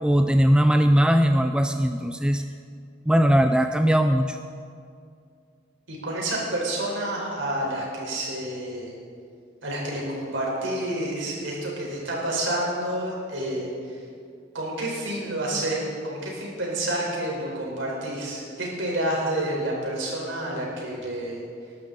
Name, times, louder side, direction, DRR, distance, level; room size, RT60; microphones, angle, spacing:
voice 1, 0.0-2.4 3.1-4.4, equal, 5° right, 6 dB, 0.3 m, -19 dB
voice 2, 5.9-8.9 9.6-14.0 14.5-21.4, right 1 dB, 80° right, -3 dB, 4.3 m, -29 dB
21.0 x 11.5 x 4.0 m, 2.3 s
head